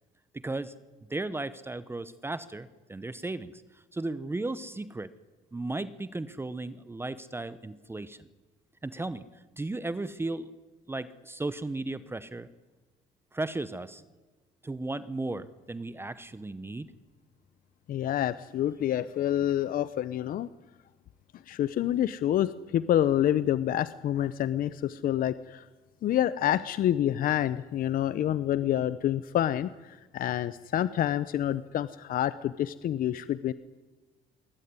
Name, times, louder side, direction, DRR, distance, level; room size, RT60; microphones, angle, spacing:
voice 1, 0.3-0.7 1.1-3.6 3.9-5.1 5.5-8.3 8.8-9.2 9.6-10.5 10.9-12.5 13.3-14.0 14.6-16.9, right 2 dB, 15° right, 15 dB, 0.9 m, -35 dB
voice 2, 17.9-20.5 21.5-25.7 26.0-33.5, left 11 dB, 55° left, 15 dB, 0.8 m, -27 dB
22.0 x 18.5 x 9.7 m, 1.3 s
cardioid pair, 110°, 17 cm